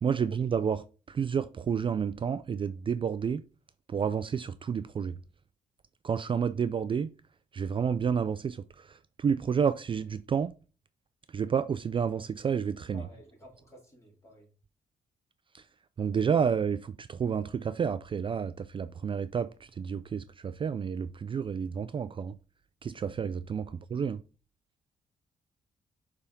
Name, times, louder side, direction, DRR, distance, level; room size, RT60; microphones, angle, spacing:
voice 1, 0.0-3.4 3.9-5.2 6.0-7.1 7.5-10.5 11.3-13.0 15.5-15.6 16.0-22.4 22.8-24.2, right 7 dB, 35° right, 0.4 m, -30 dB
voice 2, 12.9-14.5 23.6-23.7, left 1 dB, 20° left, 3.3 m, -53 dB
6.8 x 3.5 x 5.2 m
cardioid pair, 85°, 14 cm